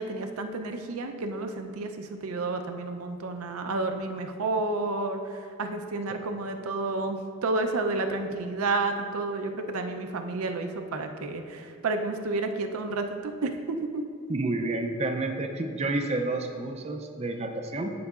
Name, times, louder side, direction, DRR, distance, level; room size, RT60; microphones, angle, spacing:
voice 1, 0.0-14.0, right 3 dB, 90° right, 6 dB, 0.5 m, -31 dB
voice 2, 14.3-17.9, right 2 dB, 30° right, 4 dB, 0.4 m, -30 dB
13.5 x 4.7 x 2.4 m, 2.2 s
head